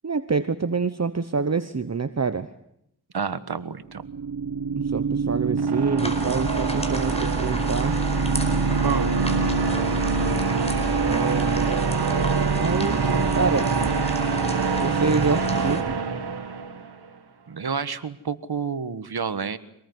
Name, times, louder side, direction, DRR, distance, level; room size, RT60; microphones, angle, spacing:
voice 1, 0.0-2.5 4.8-8.0 11.0-11.8 12.5-13.7 14.8-16.0, right 4 dB, 40° right, 12 dB, 1.1 m, -27 dB
voice 2, 3.1-4.0 8.8-9.1 17.5-19.6, right 6 dB, 70° right, 13 dB, 1.6 m, -29 dB
sound 1, 3.9-16.9, right 5 dB, 90° right, 2.2 m, -24 dB
sound 2, 6.0-15.8, left 1 dB, 15° left, 4.8 m, -33 dB
25.5 x 19.5 x 9.5 m, 0.76 s
wide cardioid pair, 65°, 39 cm